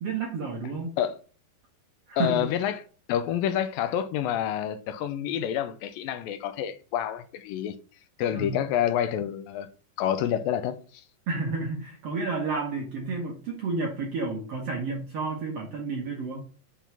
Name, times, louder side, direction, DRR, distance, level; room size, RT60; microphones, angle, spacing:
voice 1, 0.0-0.9 2.1-2.5 8.3-8.6 11.3-16.4, right 3 dB, 65° right, 1.6 m, -31 dB
voice 2, 2.2-2.8 3.1-7.7 8.2-9.7 10.0-11.0, left 10 dB, 80° left, 2.3 m, -28 dB
6.2 x 3.6 x 5.7 m
omnidirectional pair, 4.1 m